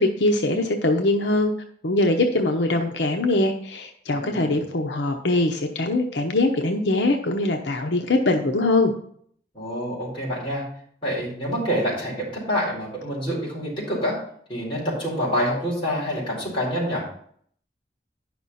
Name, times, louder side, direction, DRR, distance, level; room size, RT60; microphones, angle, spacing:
voice 1, 0.0-1.5 1.8-8.9, left 2 dB, 90° left, 4 dB, 0.9 m, -22 dB
voice 2, 4.1-4.6 9.5-10.6 11.0-14.2 14.5-17.0, equal, 30° left, -5 dB, 4.5 m, -27 dB
10.0 x 6.1 x 4.2 m, 0.62 s
head